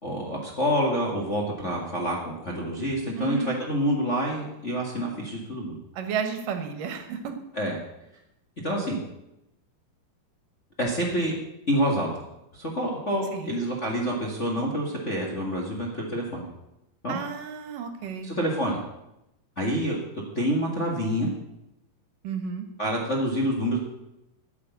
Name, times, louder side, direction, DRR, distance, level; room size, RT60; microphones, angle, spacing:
voice 1, 0.0-5.7 7.5-7.8 8.6-9.0 10.8-11.3 11.7-12.1 12.5-16.4 17.0-17.2 18.2-18.8 19.6-20.0 20.3-21.3 22.8-23.8, equal, 30° left, -2 dB, 1.6 m, -27 dB
voice 2, 3.2-3.6 5.9-7.3 13.3-13.5 17.1-18.3 22.2-22.6, right 6 dB, 75° right, 8 dB, 2.8 m, -32 dB
10.0 x 9.7 x 8.2 m, 0.89 s
omnidirectional pair, 3.9 m